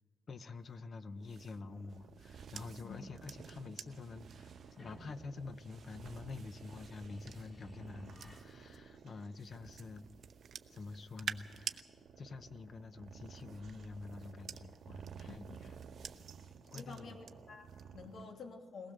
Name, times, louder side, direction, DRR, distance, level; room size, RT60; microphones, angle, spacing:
voice 1, 0.3-10.1 10.7-11.8 12.2-15.7 16.6-17.2 18.0-18.2, left 4 dB, 50° left, 13 dB, 0.9 m, -48 dB
sound 1, 0.6-18.3, right 6 dB, 75° right, 1.7 m, -55 dB
sound 2, 1.2-8.8 9.4-11.8 13.1-17.3 17.7-18.0, right 7 dB, 60° right, 0.7 m, -51 dB
sound 3, 4.5-9.9, left 1 dB, 35° left, 2.5 m, -60 dB
voice 2, 15.3-15.6 16.7-18.9, left 4 dB, 65° left, 3 dB, 2.7 m, -50 dB
22.0 x 19.0 x 6.7 m, 1.5 s
cardioid pair, 120°, 0 cm